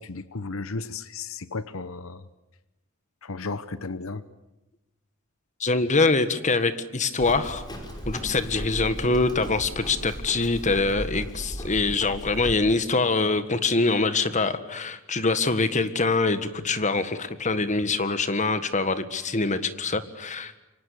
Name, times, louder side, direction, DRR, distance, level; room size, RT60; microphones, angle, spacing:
voice 1, 0.0-2.3 3.2-4.2, left 3 dB, 75° left, 14 dB, 1.0 m, -34 dB
voice 2, 5.6-7.6 8.1-20.6, left 3 dB, 35° left, 11 dB, 1.7 m, -24 dB
Livestock farm animals working animals, 7.2-12.5, equal, 20° left, 5.6 m, -36 dB
28.0 x 24.5 x 8.5 m, 0.99 s
head